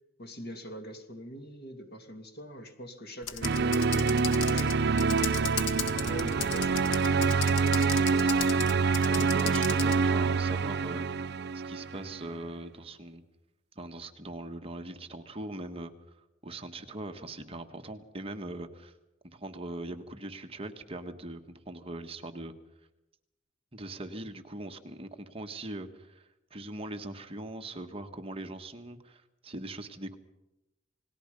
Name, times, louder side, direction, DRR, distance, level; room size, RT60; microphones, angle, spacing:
voice 1, 0.2-5.3 6.1-8.4, equal, 60° left, 5 dB, 2.9 m, -44 dB
Computer keyboard, 3.2-10.0, left 7 dB, 80° left, 1.9 m, -36 dB
sound 1, 3.4-12.3, right 4 dB, 60° right, 0.7 m, -26 dB
voice 2, 9.0-11.0 11.5-13.2 13.7-15.9 16.4-18.9 19.2-21.4 21.7-22.5 23.7-30.2, right 2 dB, 30° right, 6 dB, 1.5 m, -41 dB
28.5 x 19.5 x 5.3 m, 0.92 s
head